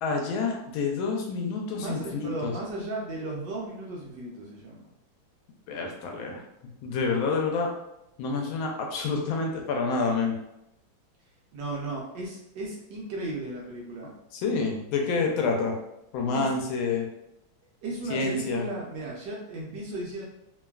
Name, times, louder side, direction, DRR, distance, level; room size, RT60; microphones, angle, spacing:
voice 1, 0.0-2.5 5.7-6.4 6.8-7.7 8.2-10.4 14.3-15.7 16.1-17.1 18.1-18.7, left 4 dB, 80° left, 1 dB, 1.4 m, -28 dB
voice 2, 1.8-4.9 11.5-14.1 16.3-16.5 17.8-20.3, right 2 dB, 75° right, -3 dB, 1.1 m, -35 dB
3.3 x 2.2 x 2.2 m, 0.86 s
omnidirectional pair, 2.2 m